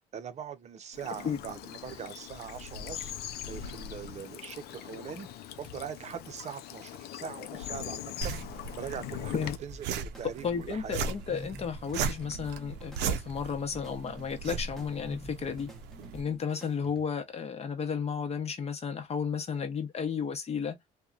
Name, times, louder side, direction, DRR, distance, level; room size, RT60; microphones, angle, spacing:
voice 1, 0.1-3.1 3.5-5.3 5.6-8.4 8.8-11.0, right 8 dB, 40° right, 0.6 m, -41 dB
Bird vocalization bird call bird song / Stream, 0.9-9.6, left 10 dB, 70° left, 0.4 m, -41 dB
sound 1, 8.2-16.2, right 6 dB, 80° right, 0.5 m, -37 dB
sound 2, 9.7-17.3, left 1 dB, ahead, 0.8 m, -49 dB
voice 2, 10.4-15.7 16.1-20.8, left 6 dB, 40° left, 0.8 m, -33 dB
2.8 x 2.2 x 2.4 m
cardioid pair, 110°, 17 cm